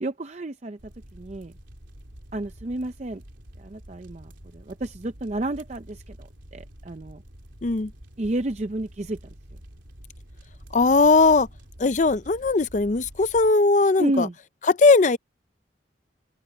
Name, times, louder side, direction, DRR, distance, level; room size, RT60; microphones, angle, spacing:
voice 1, 0.0-0.8 1.1-1.5 2.3-3.2 3.6-7.2 8.2-9.3 14.0-14.3, right 1 dB, 35° right, 0.5 m, -31 dB
sound 1, 0.8-13.5, equal, 75° right, 3.4 m, -47 dB
voice 2, 10.7-11.5 11.8-14.3 14.7-15.2, left 3 dB, 40° left, 0.5 m, -19 dB
open air
head